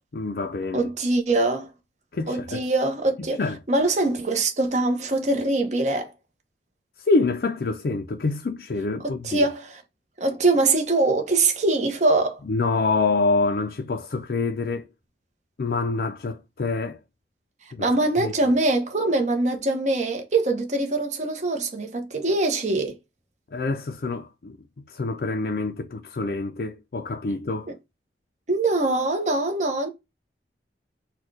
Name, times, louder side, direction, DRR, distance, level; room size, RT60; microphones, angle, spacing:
voice 1, 0.1-0.9 2.1-2.6 3.2-3.6 7.0-9.5 12.4-14.9 15.6-17.0 17.7-17.9 18.2-18.3 23.5-27.7, left 3 dB, 55° left, 0.5 m, -26 dB
voice 2, 0.7-1.7 2.3-3.4 3.7-6.1 9.0-9.8 10.2-12.4 17.8-23.0 28.5-29.9, right 2 dB, 40° right, 0.9 m, -23 dB
4.3 x 2.3 x 4.7 m
head